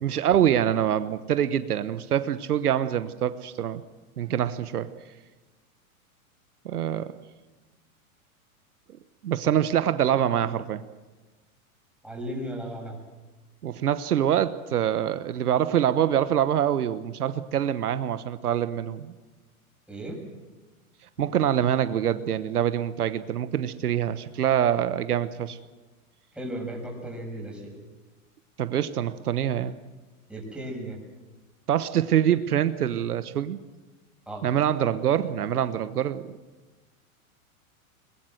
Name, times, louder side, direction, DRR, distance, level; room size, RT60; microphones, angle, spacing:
voice 1, 0.0-3.8 4.2-4.9 6.6-7.1 9.2-10.8 13.6-19.1 21.2-25.6 28.6-29.8 31.7-33.6 34.4-36.4, right 10 dB, 85° right, 12 dB, 1.2 m, -25 dB
voice 2, 12.0-13.0 19.9-20.2 26.3-27.7 30.3-31.0 34.3-34.5, right 1 dB, ahead, -1 dB, 7.3 m, -35 dB
23.0 x 21.0 x 8.0 m, 1.2 s
hypercardioid pair, 120°, 44 cm